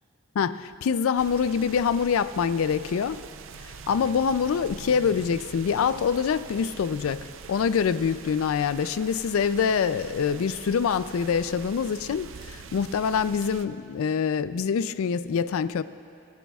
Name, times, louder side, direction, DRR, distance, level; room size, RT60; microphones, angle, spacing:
voice 1, 0.4-3.2 3.6-15.8, left 6 dB, 80° left, 15 dB, 0.4 m, -25 dB
sound 1, 1.2-13.7, right 5 dB, 65° right, 0.5 m, -44 dB
25.5 x 14.0 x 2.3 m, 2.6 s
head